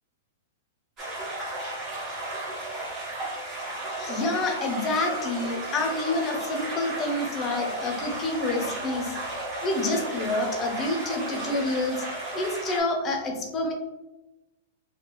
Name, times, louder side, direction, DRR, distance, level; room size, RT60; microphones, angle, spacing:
sound 1, 1.0-12.8, right 1 dB, 25° right, 1.2 m, -34 dB
voice 1, 4.0-9.2 9.6-12.0 12.3-13.7, left 2 dB, 25° left, 2 dB, 0.7 m, -28 dB
3.3 x 2.8 x 3.1 m, 1.0 s
hypercardioid pair, 145°, 0 cm